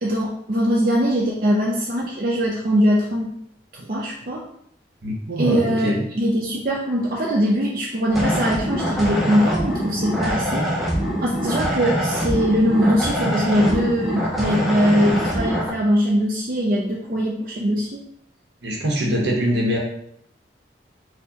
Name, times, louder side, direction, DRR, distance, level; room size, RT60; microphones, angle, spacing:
voice 1, 0.0-3.3 3.7-4.4 5.4-10.7 11.2-18.0, equal, 50° right, -3 dB, 0.5 m, -21 dB
voice 2, 5.0-6.0 18.6-19.8, equal, 80° right, -1 dB, 0.9 m, -23 dB
sound 1, 8.1-15.7, equal, ahead, 0.6 m, -24 dB
4.4 x 2.2 x 2.8 m, 0.70 s
head